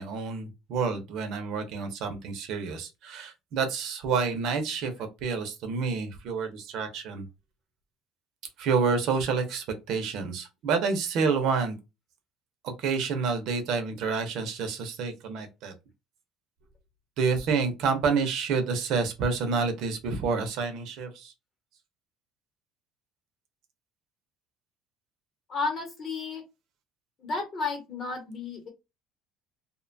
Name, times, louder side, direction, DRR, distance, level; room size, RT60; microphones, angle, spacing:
voice 1, 0.0-7.3 8.6-11.8 12.6-15.7 17.2-21.3, right 5 dB, 50° right, 0.6 m, -28 dB
voice 2, 25.5-26.4 27.2-28.7, left 4 dB, 30° left, 0.9 m, -32 dB
2.6 x 2.2 x 2.6 m
cardioid pair, 175°, 0 cm